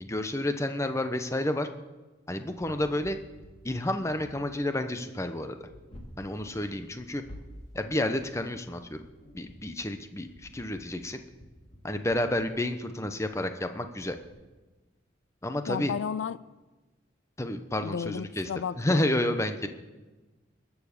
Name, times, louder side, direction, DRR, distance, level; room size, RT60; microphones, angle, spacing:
voice 1, 0.0-1.7 2.3-3.2 3.6-5.7 6.2-7.2 7.7-9.0 9.3-11.2 11.8-14.2 15.4-15.9 17.4-18.5 18.8-19.7, left 1 dB, 15° left, 8 dB, 0.8 m, -30 dB
sound 1, 2.6-14.3, equal, 35° left, 2.5 m, -51 dB
voice 2, 15.7-16.4 17.8-19.1, left 7 dB, 80° left, 18 dB, 0.4 m, -33 dB
21.5 x 7.2 x 6.7 m, 1.2 s
head